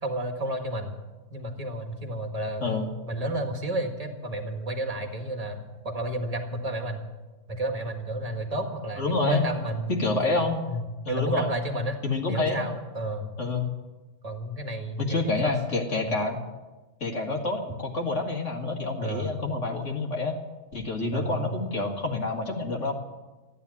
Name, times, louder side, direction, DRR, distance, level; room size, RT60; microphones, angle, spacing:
voice 1, 0.0-1.0 1.3-2.7 3.1-7.0 7.5-12.0 12.3-13.3 14.2-15.6 16.1-16.2 19.0-19.4 21.1-21.6, right 1 dB, 25° right, 4 dB, 1.8 m, -31 dB
voice 2, 9.0-9.5 9.9-10.6 11.1-11.5 12.0-12.8 13.4-13.6 15.0-16.4 17.0-20.4 20.7-22.9, left 3 dB, 50° left, 1 dB, 2.2 m, -28 dB
14.5 x 9.7 x 9.8 m, 1.2 s
omnidirectional pair, 1.6 m